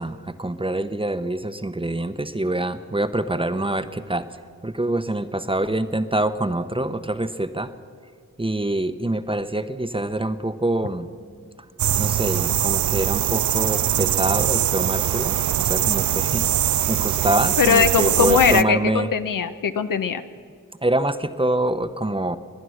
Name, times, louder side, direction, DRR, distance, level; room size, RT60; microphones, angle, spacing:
voice 1, 0.0-4.3 4.6-7.7 8.4-11.1 12.0-19.1 20.8-22.4, right 1 dB, 15° right, 11 dB, 0.9 m, -25 dB
sound 1, 11.8-18.6, right 11 dB, 60° right, 0.4 m, -22 dB
voice 2, 17.6-20.2, left 6 dB, 70° left, 10 dB, 0.8 m, -20 dB
22.5 x 9.3 x 6.5 m, 2.1 s
cardioid pair, 45°, 34 cm